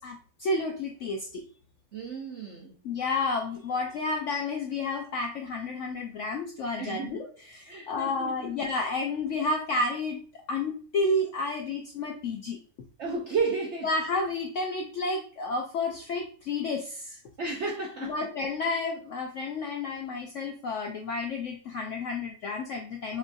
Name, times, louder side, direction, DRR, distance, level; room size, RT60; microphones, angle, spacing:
voice 1, 0.0-1.4 2.8-10.2 10.5-12.6 13.8-17.2 18.0-23.2, left 3 dB, 75° left, 0.7 m, -31 dB
voice 2, 1.9-2.7 6.8-7.2 7.7-8.3 13.0-13.9 17.4-18.2, right 4 dB, 65° right, 0.7 m, -32 dB
5.3 x 2.6 x 2.4 m
omnidirectional pair, 1.8 m